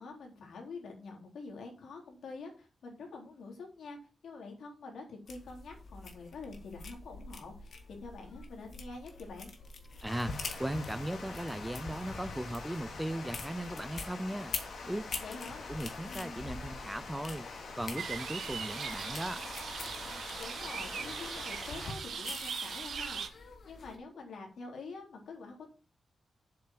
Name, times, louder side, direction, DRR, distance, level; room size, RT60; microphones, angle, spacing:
voice 1, 0.0-4.0 4.2-9.5 15.2-15.7 20.4-25.7, left 4 dB, 85° left, 3.6 m, -46 dB
sound 1, 5.3-24.0, left 4 dB, 50° left, 1.7 m, -46 dB
voice 2, 10.0-14.5 14.9-15.0 15.7-17.5 17.8-19.4, right 1 dB, 5° right, 0.5 m, -37 dB
Water, 10.1-21.9, left 3 dB, 65° left, 2.4 m, -44 dB
sound 2, 17.9-23.3, right 6 dB, 70° right, 1.4 m, -40 dB
7.8 x 7.0 x 5.9 m
wide cardioid pair, 175°, 0 cm